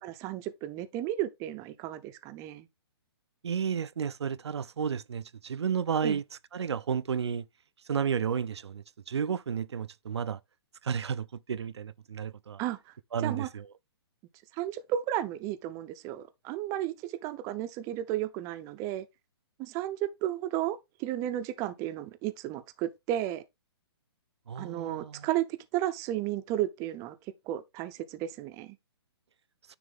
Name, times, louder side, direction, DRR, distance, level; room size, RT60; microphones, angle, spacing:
voice 1, 0.0-2.7 6.0-6.2 12.6-12.9 13.2-13.5 14.5-19.1 19.6-23.4 24.6-25.4 25.7-27.2 27.5-28.8, right 13 dB, 20° right, 0.5 m, -33 dB
voice 2, 3.4-6.2 6.5-7.5 7.9-10.4 10.8-12.6 13.1-13.6 24.5-25.3, right 7 dB, 80° right, 0.4 m, -32 dB
9.6 x 3.2 x 3.4 m
hypercardioid pair, 135°, 14 cm